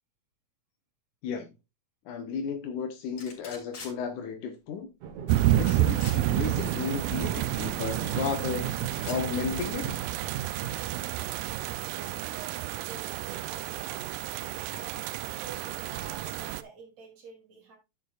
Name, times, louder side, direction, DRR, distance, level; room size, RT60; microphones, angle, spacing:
voice 1, 2.1-4.9 5.6-10.0, left 6 dB, 80° left, 2.5 m, -34 dB
sound 1, 3.2-3.9 5.4-6.2 7.9-8.6 8.9-9.2, left 4 dB, 60° left, 4.3 m, -44 dB
sound 2, 5.0-9.5 9.8-11.1, right 6 dB, 70° right, 2.4 m, -38 dB
sound 3, 5.3-16.6, right 14 dB, 90° right, 2.1 m, -30 dB
voice 2, 11.5-14.2 14.7-17.8, right 5 dB, 55° right, 4.0 m, -48 dB
11.0 x 8.4 x 2.4 m
omnidirectional pair, 3.5 m